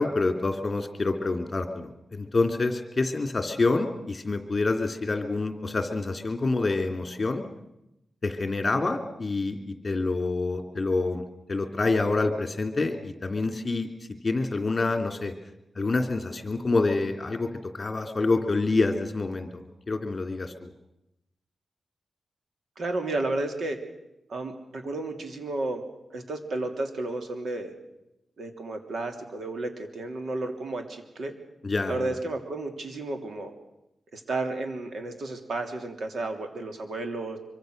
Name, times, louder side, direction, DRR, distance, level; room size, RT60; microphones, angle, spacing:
voice 1, 0.0-7.4 8.2-13.9 14.2-15.3 15.7-17.5 17.7-20.7 31.6-32.1, left 3 dB, 30° left, 7 dB, 2.8 m, -27 dB
voice 2, 22.8-23.8 24.3-25.8 26.1-27.7 28.4-31.3 31.9-33.5 34.1-37.4, right 2 dB, 65° right, 5 dB, 3.2 m, -32 dB
25.0 x 24.0 x 6.6 m, 0.87 s
wide cardioid pair, 120°, 0 cm